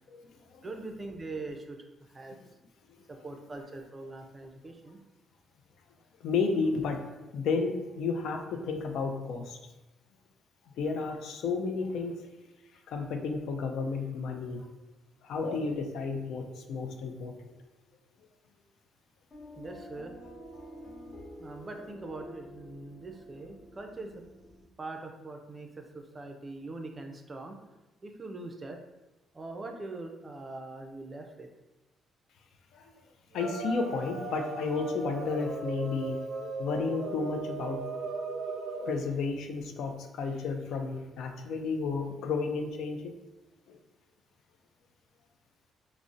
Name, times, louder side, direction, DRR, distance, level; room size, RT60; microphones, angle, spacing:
voice 1, 0.1-0.7 2.3-2.4 3.0-3.4 6.2-7.0 7.3-9.6 10.7-12.2 12.9-14.7 15.2-17.5 32.7-32.9 33.3-36.2 36.6-37.9 38.8-43.1 43.7-43.8, left 4 dB, 80° left, 4 dB, 0.3 m, -32 dB
voice 2, 0.6-1.8 2.1-2.4 3.1-5.0 19.6-20.1 21.4-24.1 24.8-27.6 28.0-28.8 29.3-31.5, right 2 dB, 30° right, 4 dB, 0.4 m, -42 dB
sound 1, 19.3-24.7, left 1 dB, 50° left, 0.7 m, -48 dB
sound 2, 33.3-39.0, right 3 dB, 90° right, 0.5 m, -37 dB
3.8 x 2.0 x 2.4 m, 1.0 s
cardioid pair, 90°, 0 cm